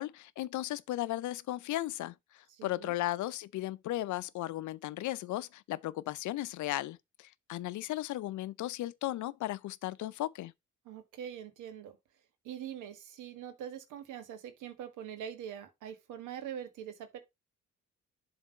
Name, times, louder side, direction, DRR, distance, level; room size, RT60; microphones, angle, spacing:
voice 1, 0.0-10.5, left 15 dB, 75° left, 0.5 m, -36 dB
voice 2, 2.5-2.9 10.8-12.0 12.4-17.2, right 9 dB, 90° right, 1.4 m, -43 dB
7.4 x 3.4 x 5.2 m
cardioid pair, 90°, 30 cm